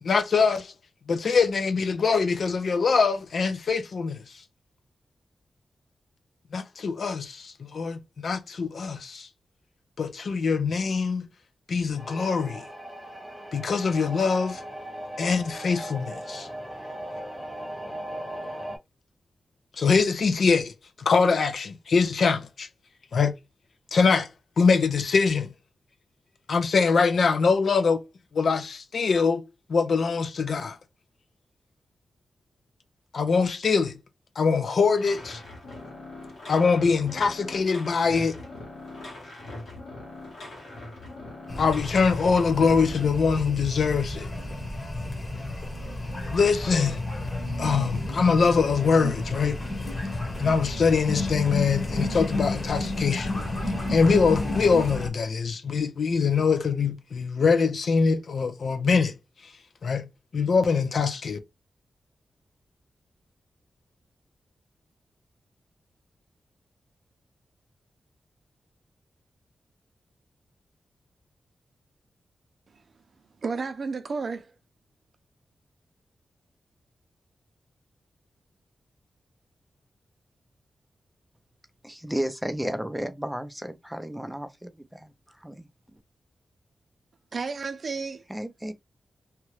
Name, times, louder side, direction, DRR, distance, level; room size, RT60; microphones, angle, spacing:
voice 1, 0.0-0.7 1.1-4.3 6.5-9.3 10.0-11.3 11.7-12.7 13.5-14.6 15.2-16.5 19.8-22.7 23.1-23.3 23.9-24.3 24.6-25.5 26.5-28.0 28.3-29.4 29.7-30.8 33.1-34.0 34.4-35.4 36.5-38.4 41.6-44.3 46.3-47.0 47.6-49.6 50.4-53.3 53.9-59.2 59.8-61.4, left 5 dB, 65° left, 0.5 m, -23 dB
sound 1, 12.0-18.8, right 1 dB, 20° left, 1.1 m, -38 dB
sound 2, 34.9-43.0, left 2 dB, 85° left, 1.5 m, -42 dB
sound 3, 41.5-55.1, left 2 dB, 40° left, 1.2 m, -31 dB
voice 2, 73.4-74.5 87.3-88.2, right 4 dB, 55° right, 0.5 m, -31 dB
voice 3, 81.8-85.1 85.4-85.7 88.3-88.7, right 1 dB, 5° right, 0.5 m, -33 dB
2.8 x 2.3 x 3.1 m
wide cardioid pair, 110°, 0 cm